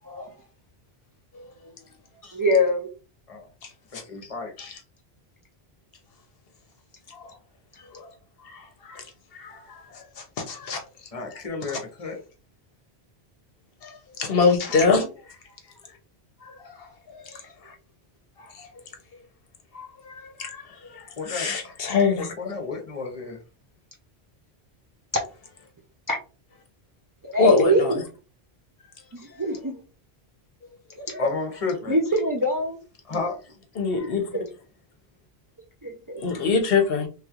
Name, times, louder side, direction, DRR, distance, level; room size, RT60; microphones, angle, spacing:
voice 1, 1.3-1.7 3.9-4.0 4.6-4.8 7.1-7.3 7.8-8.1 8.4-10.8 13.8-15.0 16.4-17.7 18.5-18.7 19.7-22.5 27.4-28.0 33.8-34.3 36.2-37.1, left 4 dB, 65° left, 0.9 m, -26 dB
voice 2, 2.3-2.9 26.1-26.2 27.2-28.0 29.2-29.8 31.0-31.2 31.9-32.8 34.3-34.4 35.8-36.2, equal, 30° right, 0.4 m, -24 dB
voice 3, 3.9-4.5 11.1-12.2 21.2-21.5 22.4-23.4 31.2-32.0 33.0-33.6, left 4 dB, 35° left, 0.9 m, -32 dB
3.3 x 3.0 x 2.4 m
omnidirectional pair, 1.1 m